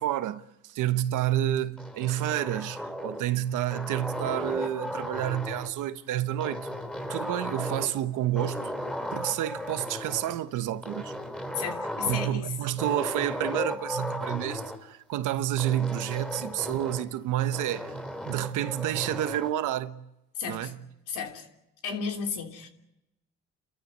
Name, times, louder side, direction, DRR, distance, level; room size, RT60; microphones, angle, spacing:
voice 1, 0.0-6.7 7.1-8.6 9.1-11.1 12.0-17.9 18.2-20.0 20.5-20.8, right 12 dB, 90° right, 1.1 m, -29 dB
sound 1, 1.8-3.3 3.7-5.8 6.4-8.0 8.3-10.4 10.8-12.4 12.8-14.8 15.6-17.1 17.5-19.6, equal, 5° left, 3.8 m, -35 dB
voice 2, 11.5-12.5 16.7-16.8 20.3-20.7 21.1-21.5 21.8-22.7, left 6 dB, 85° left, 3.2 m, -33 dB
30.0 x 13.5 x 9.5 m
cardioid pair, 90°, 30 cm